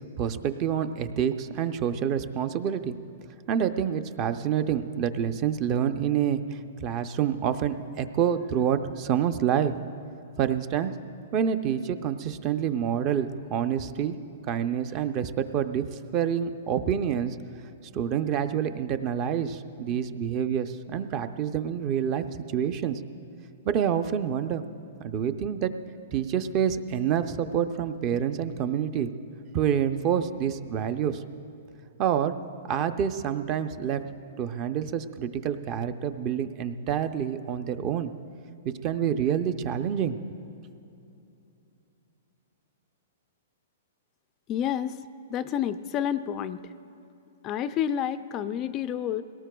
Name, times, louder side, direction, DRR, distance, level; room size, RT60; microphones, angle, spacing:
voice 1, 0.2-3.0 3.5-9.7 10.4-10.9 11.3-14.2 14.5-17.4 17.9-22.2 22.5-23.0 23.6-24.6 25.0-25.7 26.1-29.1 29.5-31.2 32.0-32.4 32.7-34.0 34.4-38.1 38.6-40.2, right 9 dB, 30° right, 10 dB, 0.5 m, -27 dB
voice 2, 44.5-46.7 47.4-49.2, left 9 dB, 25° left, 12 dB, 0.3 m, -29 dB
21.5 x 18.0 x 2.3 m, 2.8 s
hypercardioid pair, 150°, 0 cm